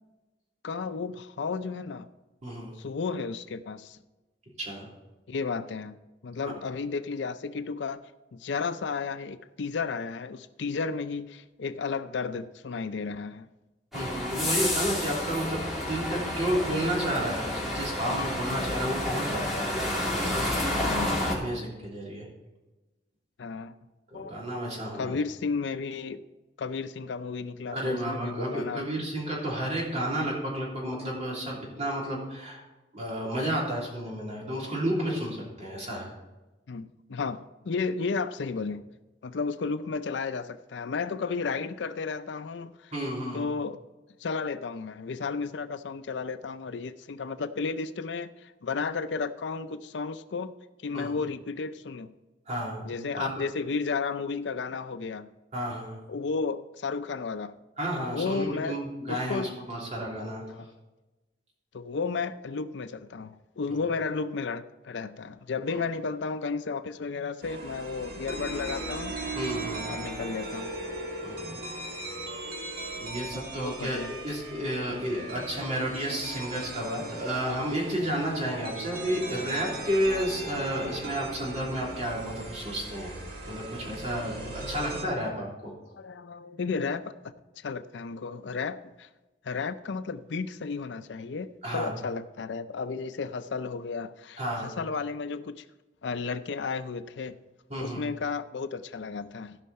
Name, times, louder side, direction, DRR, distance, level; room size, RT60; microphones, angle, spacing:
voice 1, 0.6-2.1 2.8-4.0 5.3-6.0 6.2-8.0 8.3-13.5 20.8-21.1 23.4-23.8 24.1-24.4 24.9-26.2 26.6-28.9 36.7-38.8 39.2-42.9 43.3-43.8 44.2-50.6 50.8-52.1 52.8-55.3 56.1-57.5 58.1-58.8 59.1-59.5 60.5-60.7 61.7-69.2 69.9-70.8 73.6-74.1 86.0-87.1 87.6-89.1 89.4-95.6 96.0-97.4 97.8-99.6, left 4 dB, 75° left, 0.5 m, -33 dB
voice 2, 2.4-2.7 4.6-4.9 6.4-6.5 13.9-22.3 24.1-25.1 27.7-32.6 32.9-36.1 42.9-43.4 50.9-51.1 52.5-53.4 55.5-56.0 57.8-60.4 65.7-65.8 69.3-69.9 71.2-71.6 73.0-83.1 83.4-85.7 91.6-91.9 94.4-94.7 97.7-98.0, equal, 40° right, 3.2 m, -32 dB
sound 1, 13.9-21.3, left 1 dB, ahead, 3.1 m, -30 dB
sound 2, 67.4-85.0, right 2 dB, 55° right, 2.0 m, -38 dB
15.5 x 5.6 x 4.2 m
head